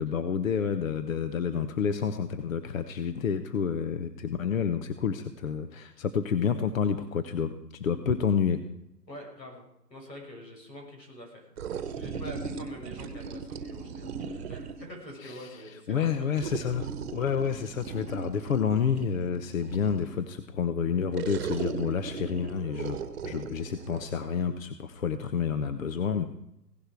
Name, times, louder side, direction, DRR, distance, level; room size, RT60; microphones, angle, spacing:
voice 1, 0.0-8.6 15.2-15.5 15.9-23.0 23.2-26.2, left 6 dB, 55° left, 10 dB, 1.1 m, -29 dB
voice 2, 9.1-9.6 9.9-16.2, equal, 90° left, 2 dB, 6.4 m, -45 dB
sound 1, 11.6-14.9 16.3-20.2 21.1-24.1, right 6 dB, 40° right, 1.4 m, -38 dB
17.0 x 11.5 x 4.7 m, 0.83 s
hypercardioid pair, 145°, 49 cm